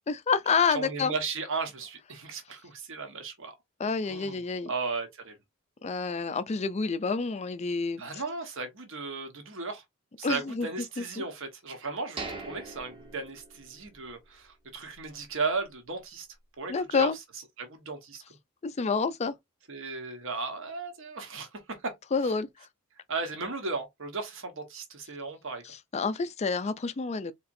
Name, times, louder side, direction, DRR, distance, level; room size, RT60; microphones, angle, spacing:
voice 1, 0.1-1.1 3.8-4.7 5.8-8.2 10.2-10.7 11.0-11.2 16.7-17.2 18.6-19.3 22.1-22.5 25.6-27.3, left 5 dB, 30° left, 0.4 m, -28 dB
voice 2, 0.7-3.5 4.1-4.4 4.7-5.4 8.0-9.8 10.2-16.3 16.6-17.1 17.6-18.2 19.7-21.9 23.1-25.6, right 4 dB, 60° right, 1.2 m, -35 dB
sound 1, 12.2-14.1 14.4-14.5 15.0-15.2, right 3 dB, 25° right, 1.0 m, -41 dB
4.1 x 2.9 x 2.6 m
head